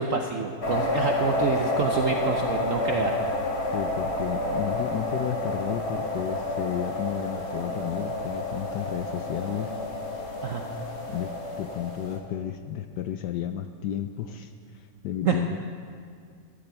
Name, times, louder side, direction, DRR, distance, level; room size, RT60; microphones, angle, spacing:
voice 1, 0.0-3.1 10.4-10.6 15.2-15.4, right 6 dB, 65° right, 3 dB, 0.8 m, -27 dB
sound 1, 0.6-12.2, left 2 dB, 35° left, 1.7 m, -29 dB
voice 2, 3.7-9.7 11.1-15.6, left 10 dB, 70° left, 8 dB, 1.0 m, -32 dB
12.5 x 11.5 x 6.9 m, 2.2 s
omnidirectional pair, 2.2 m